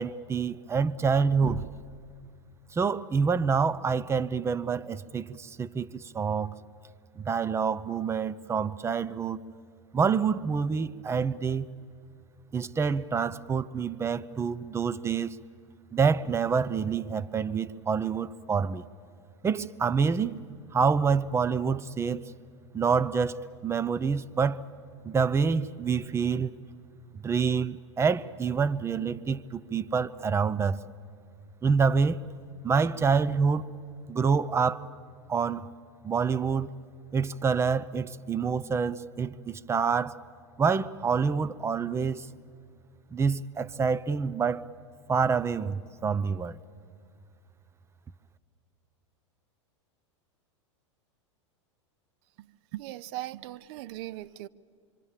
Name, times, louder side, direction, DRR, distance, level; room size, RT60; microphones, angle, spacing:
voice 1, 0.0-1.7 2.7-6.6 7.2-9.4 9.9-11.7 12.5-15.4 15.9-18.8 19.4-20.4 20.7-22.3 22.7-23.4 23.6-24.6 25.0-26.6 27.2-30.8 31.6-32.3 32.6-33.7 34.1-34.9 35.3-35.7 36.0-36.7 37.1-40.2 40.6-42.3 43.1-44.7 45.1-46.6, right 5 dB, 15° right, 0.6 m, -27 dB
voice 2, 52.7-54.5, right 15 dB, 55° right, 0.6 m, -39 dB
26.0 x 24.5 x 7.3 m
hypercardioid pair, 100°, 16 cm